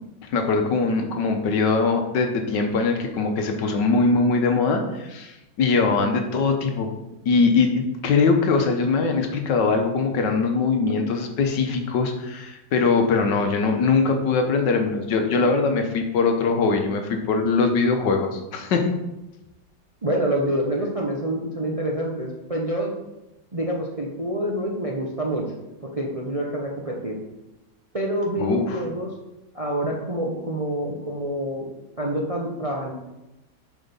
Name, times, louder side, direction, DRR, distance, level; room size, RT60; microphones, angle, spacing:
voice 1, 0.2-6.9 7.2-18.9 28.4-28.8, left 4 dB, 70° left, 5 dB, 1.6 m, -22 dB
voice 2, 20.0-22.9 23.5-25.4 25.8-27.2 27.9-29.1 29.5-31.7 32.0-32.9, right 1 dB, 30° right, -1 dB, 0.7 m, -27 dB
7.7 x 5.0 x 5.4 m, 0.97 s
omnidirectional pair, 2.0 m